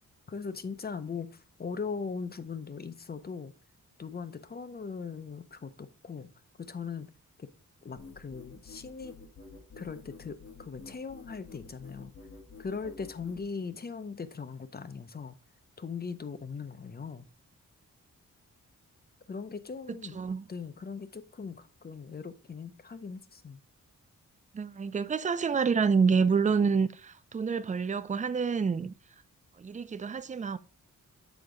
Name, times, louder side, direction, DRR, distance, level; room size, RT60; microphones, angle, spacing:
voice 1, 0.3-3.5 4.0-6.3 6.6-7.1 7.4-7.5 7.8-9.2 9.8-12.1 12.6-15.4 15.8-17.3 19.3-20.2 20.5-23.6, left 5 dB, 30° left, 0.6 m, -39 dB
sound 1, 8.0-13.4, left 4 dB, 45° left, 1.7 m, -49 dB
voice 2, 19.9-20.4 24.5-28.9 29.6-30.6, right 5 dB, 25° right, 0.4 m, -28 dB
7.1 x 4.5 x 3.7 m
wide cardioid pair, 110°, 32 cm